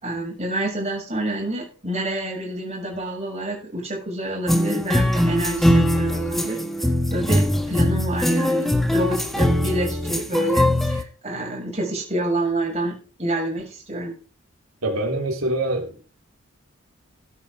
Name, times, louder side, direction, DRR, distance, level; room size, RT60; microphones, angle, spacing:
voice 1, 0.0-6.6 7.1-14.1, right 1 dB, 30° right, 6.7 m, -28 dB
sound 1, 4.5-11.0, left 1 dB, ahead, 1.5 m, -21 dB
voice 2, 14.8-16.0, right 1 dB, 80° right, 4.0 m, -25 dB
13.0 x 9.4 x 4.7 m
head